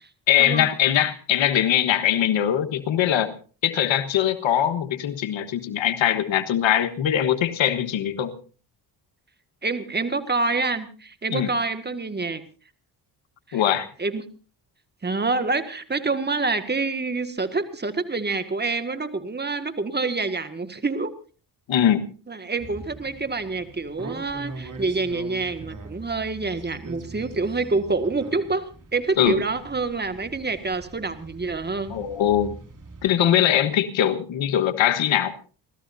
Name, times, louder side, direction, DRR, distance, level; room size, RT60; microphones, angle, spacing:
voice 1, 0.3-3.3 3.6-8.3 11.3-11.5 13.5-13.9 21.7-22.1 29.2-29.4 31.9-32.6 33.0-35.3, left 10 dB, 75° left, 9 dB, 1.5 m, -21 dB
voice 2, 9.6-12.4 13.5-13.6 14.0-14.2 15.0-21.1 22.3-32.0, right 3 dB, 20° right, 9 dB, 1.9 m, -27 dB
sound 1, 22.6-33.1, right 2 dB, 40° right, 3.3 m, -42 dB
30.0 x 13.5 x 2.7 m, 0.37 s
cardioid pair, 80°, 46 cm